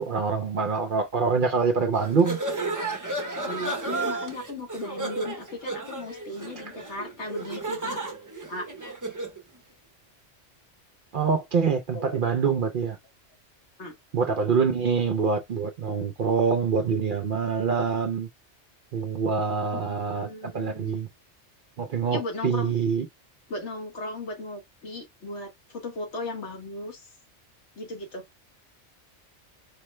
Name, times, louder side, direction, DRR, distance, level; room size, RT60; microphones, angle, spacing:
voice 1, 0.0-2.4 11.1-13.0 14.1-18.3 18.9-21.1 21.8-23.1, right 5 dB, 55° right, 0.6 m, -25 dB
sound 1, 1.9-9.4, right 2 dB, 20° right, 0.7 m, -33 dB
voice 2, 3.4-8.0 8.5-8.7 11.9-12.2 13.8-13.9 19.7-21.1 22.1-22.7 23.5-27.1 27.8-28.2, left 2 dB, 70° left, 1.5 m, -36 dB
4.8 x 2.0 x 3.1 m
omnidirectional pair, 1.2 m